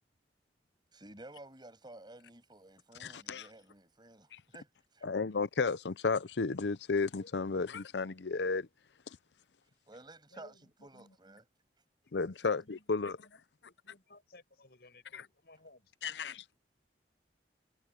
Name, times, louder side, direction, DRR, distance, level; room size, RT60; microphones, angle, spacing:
voice 1, 0.9-5.1 9.9-10.5 10.8-11.4, right 2 dB, 25° right, 7.6 m, -53 dB
voice 2, 3.0-3.5 4.3-4.4 5.0-8.7 12.1-13.1 15.1-15.2 16.0-16.4, left 4 dB, 80° left, 0.7 m, -33 dB
voice 3, 10.3-11.2 12.1-12.3 12.6-15.9, left 2 dB, 60° left, 7.9 m, -60 dB
head